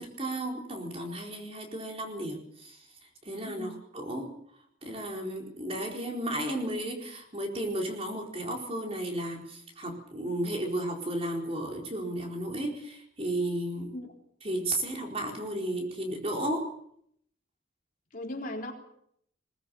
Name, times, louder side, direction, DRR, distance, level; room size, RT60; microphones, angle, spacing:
voice 1, 0.0-2.9 3.2-4.3 4.8-13.9 14.4-16.7, right 1 dB, 30° right, 1 dB, 4.5 m, -33 dB
voice 2, 18.1-18.7, left 1 dB, 45° left, 1 dB, 3.7 m, -37 dB
22.0 x 20.5 x 7.0 m, 0.71 s
head